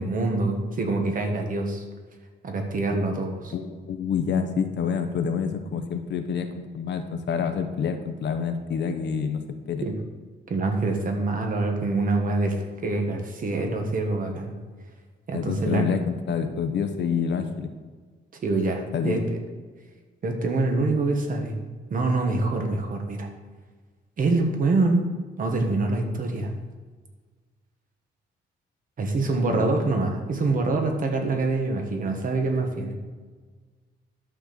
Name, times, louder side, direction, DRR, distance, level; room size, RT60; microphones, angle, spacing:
voice 1, 0.0-1.8 2.4-3.5 9.8-9.9 10.5-12.6 12.8-14.5 15.3-15.8 18.4-19.4 20.2-21.6 21.9-23.3 24.2-25.1 25.4-26.5 29.0-32.9, right 3 dB, 45° right, 3 dB, 1.5 m, -25 dB
voice 2, 3.5-9.4 9.7-9.9 15.3-17.7 18.9-19.2 29.5-29.8, left 6 dB, 65° left, 7 dB, 1.0 m, -27 dB
11.5 x 4.4 x 6.8 m, 1.5 s
cardioid pair, 155°, 20 cm